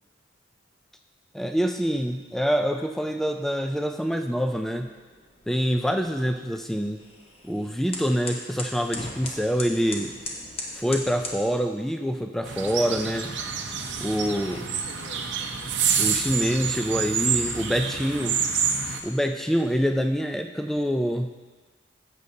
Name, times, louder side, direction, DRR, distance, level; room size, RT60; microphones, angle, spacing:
voice 1, 1.3-4.9 5.5-7.0 7.4-10.1 10.7-13.4 14.0-14.6 16.0-18.4 19.0-21.3, equal, ahead, 5 dB, 0.4 m, -26 dB
sound 1, 4.7-11.4, left 2 dB, 30° left, 1.0 m, -39 dB
voice 2, 10.0-10.6 13.7-15.9 18.7-19.1, left 3 dB, 80° left, 4 dB, 0.9 m, -49 dB
sound 2, 12.4-19.0, right 6 dB, 65° right, 0.7 m, -27 dB
11.5 x 7.8 x 2.8 m, 1.3 s
head